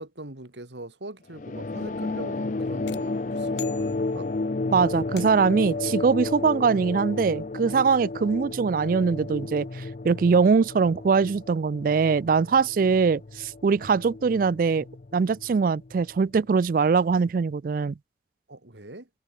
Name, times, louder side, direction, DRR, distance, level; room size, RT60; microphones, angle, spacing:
voice 1, 0.0-4.3 18.5-19.1, right 1 dB, 85° right, 3.0 m, -41 dB
sound 1, 1.3-16.2, left 3 dB, 45° left, 0.6 m, -32 dB
sound 2, 2.9-4.5 5.2-5.7, left 12 dB, 90° left, 1.8 m, -44 dB
voice 2, 4.7-14.8 15.1-17.9, right 5 dB, 50° right, 0.3 m, -22 dB
head